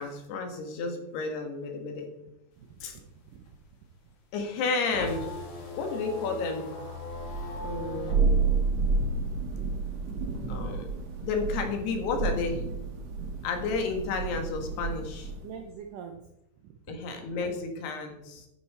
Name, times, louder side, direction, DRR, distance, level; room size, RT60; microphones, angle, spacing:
voice 1, 0.0-2.1 2.8-3.0 4.3-5.3 5.7-6.7 7.6-8.6 10.5-10.9 11.2-12.7 13.4-15.3 16.9-18.5, left 4 dB, 75° left, 4 dB, 3.7 m, -32 dB
sound 1, 2.5-9.6 10.0-11.7, left 2 dB, 40° left, 2.4 m, -40 dB
voice 2, 2.9-3.5 15.4-16.3 16.6-17.1, right 7 dB, 80° right, 4 dB, 1.9 m, -45 dB
Thunder, 7.1-15.5, right 4 dB, 55° right, 2.1 m, -30 dB
12.0 x 9.7 x 4.3 m, 0.87 s
omnidirectional pair, 4.8 m